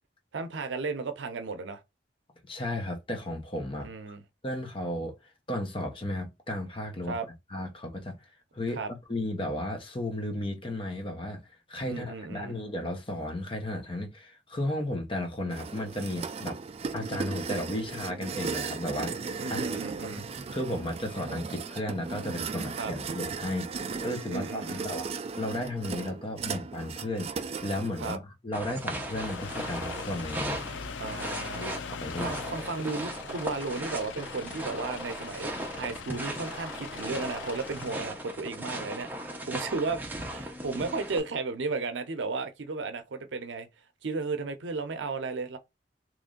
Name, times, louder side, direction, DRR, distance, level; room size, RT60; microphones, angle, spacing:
voice 1, 0.3-1.8 3.8-4.2 7.1-7.3 8.7-8.9 11.9-12.5 19.4-20.3 22.8-22.9 24.3-24.9 28.0-28.2 31.0-31.7 32.2-39.1 39.4-43.7 44.0-45.6, right 4 dB, 85° right, 0.6 m, -34 dB
voice 2, 2.5-3.9 4.4-5.1 5.5-7.1 7.5-8.2 8.5-11.4 11.7-16.6 16.9-25.1 25.4-30.6 31.6-32.4, left 1 dB, 30° left, 0.8 m, -34 dB
sound 1, 15.5-28.2, right 5 dB, 35° right, 0.3 m, -36 dB
sound 2, 28.5-41.2, right 1 dB, 10° right, 0.7 m, -37 dB
sound 3, 28.9-38.2, left 6 dB, 85° left, 0.4 m, -42 dB
3.1 x 2.5 x 3.7 m
head